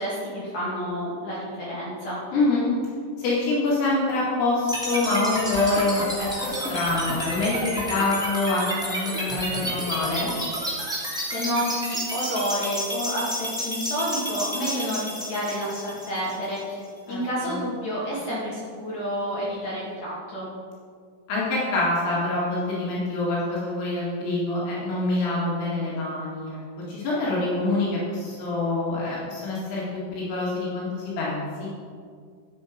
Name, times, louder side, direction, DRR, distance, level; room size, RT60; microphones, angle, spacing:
voice 1, 0.0-2.2 11.3-16.8 17.1-20.5, equal, 45° left, -7 dB, 2.8 m, -29 dB
voice 2, 2.3-2.7 3.2-6.0 6.4-10.3 17.1-17.6 21.3-26.6 26.9-31.7, left 2 dB, 75° left, -7 dB, 4.6 m, -26 dB
sound 1, 4.7-16.7, equal, ahead, 1.2 m, -30 dB
12.0 x 8.3 x 5.1 m, 2.1 s
omnidirectional pair, 6.0 m